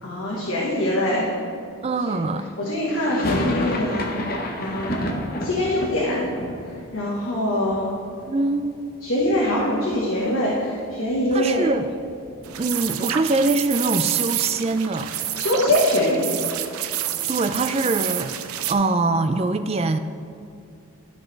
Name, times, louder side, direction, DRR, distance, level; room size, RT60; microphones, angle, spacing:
voice 1, 0.0-1.3 2.1-2.2 2.6-4.1 4.6-5.0 5.4-6.3 6.9-7.9 9.0-11.7 15.3-16.4, left 1 dB, 70° left, -5 dB, 1.3 m, -23 dB
voice 2, 1.8-2.5 8.3-8.6 11.3-11.9 12.6-15.1 17.3-18.3 18.7-20.0, right 3 dB, 30° right, 9 dB, 0.3 m, -23 dB
sound 1, 3.0-8.9 9.2-10.0 10.3-10.4 10.6-12.8, left 1 dB, 45° left, 0.8 m, -31 dB
sound 2, 12.4-18.7, right 11 dB, 85° right, 0.5 m, -28 dB
12.5 x 6.1 x 3.3 m, 2.6 s
head